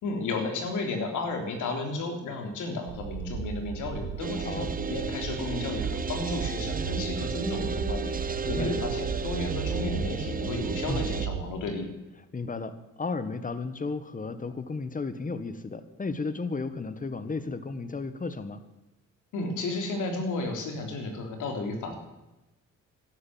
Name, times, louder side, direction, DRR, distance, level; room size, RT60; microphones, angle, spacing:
voice 1, 0.0-11.9 19.3-22.0, left 2 dB, 80° left, 4 dB, 3.5 m, -33 dB
sound 1, 2.9-11.5, right 6 dB, 70° right, 1.7 m, -34 dB
sound 2, 4.2-11.3, right 5 dB, 30° right, 0.8 m, -34 dB
voice 2, 4.4-4.8 8.4-8.8 10.9-11.1 12.3-18.6, left 4 dB, 25° left, 12 dB, 1.6 m, -34 dB
13.0 x 11.5 x 9.3 m, 1.0 s
cardioid pair, 90°, 30 cm